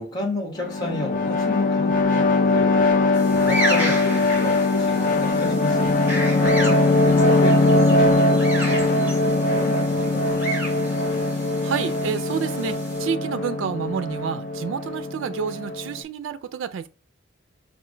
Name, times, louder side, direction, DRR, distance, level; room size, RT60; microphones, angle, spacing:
voice 1, 0.0-5.9 6.5-10.9, left 2 dB, 20° left, 1.2 m, -33 dB
sound 1, 0.6-16.0, left 2 dB, 40° left, 0.6 m, -21 dB
sound 2, 3.1-13.0, right 1 dB, 10° right, 1.4 m, -32 dB
voice 2, 11.1-16.9, right 7 dB, 80° right, 0.3 m, -29 dB
4.9 x 2.4 x 3.7 m
head